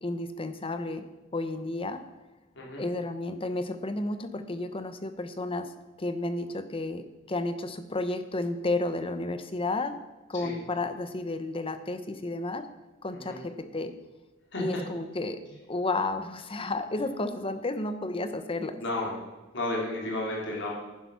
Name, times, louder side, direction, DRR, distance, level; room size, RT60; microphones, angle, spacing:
voice 1, 0.0-1.1 1.3-2.0 2.8-5.7 6.0-10.0 10.3-12.7 13.0-13.9 14.6-18.8, left 2 dB, 25° left, 10 dB, 0.9 m, -32 dB
voice 2, 18.8-19.1 19.5-20.7, left 2 dB, 65° left, -3 dB, 3.5 m, -32 dB
11.0 x 10.0 x 5.7 m, 1.1 s
head